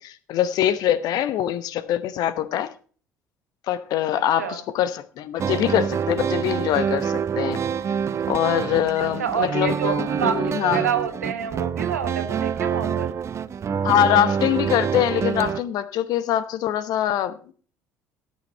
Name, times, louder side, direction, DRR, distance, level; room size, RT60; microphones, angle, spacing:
voice 1, 0.0-2.7 3.7-7.6 8.3-10.9 13.8-17.5, left 11 dB, 50° left, 1.0 m, -23 dB
sound 1, 5.4-15.6, right 7 dB, 35° right, 0.7 m, -26 dB
voice 2, 9.0-13.1, right 8 dB, 75° right, 1.3 m, -28 dB
13.5 x 8.7 x 4.3 m
figure-of-eight pair, 55°, 8 cm